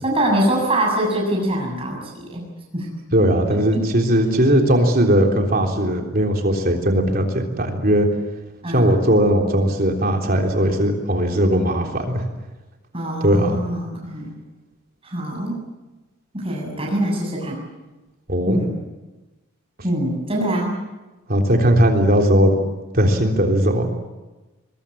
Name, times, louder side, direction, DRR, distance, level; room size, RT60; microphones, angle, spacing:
voice 1, 0.0-2.5 2.7-2.9 3.7-3.8 8.6-8.9 12.9-14.3 15.0-15.6 16.3-17.6 18.5-18.8 19.8-20.8, right 1 dB, 25° right, -1 dB, 7.3 m, -23 dB
voice 2, 3.1-8.1 8.7-12.2 13.2-13.6 18.3-18.6 21.3-22.6 22.9-23.9, equal, 40° right, 2 dB, 3.6 m, -18 dB
23.0 x 22.5 x 8.7 m, 1.1 s
head